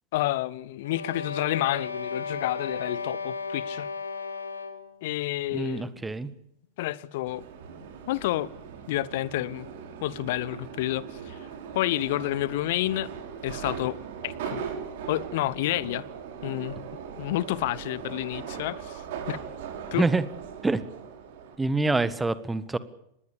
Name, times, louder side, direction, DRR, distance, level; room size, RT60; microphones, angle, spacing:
voice 1, 0.1-3.9 5.0-6.0 6.8-7.4 8.1-8.5 8.9-9.7 10.0-11.4 11.7-13.1 13.4-14.0 14.2-14.6 15.1-16.0 16.4-16.9 17.2-19.0 19.3-19.4 19.9-20.0, left 15 dB, 50° left, 1.1 m, -29 dB
sound 1, 0.8-5.0, left 4 dB, 80° left, 2.5 m, -35 dB
voice 2, 5.5-6.3 19.9-20.3 20.6-20.8 21.6-22.8, right 3 dB, 10° right, 1.6 m, -26 dB
Subway metro underground, 7.3-21.6, right 7 dB, 55° right, 5.6 m, -39 dB
25.0 x 20.5 x 7.1 m
figure-of-eight pair, 90°, 0 cm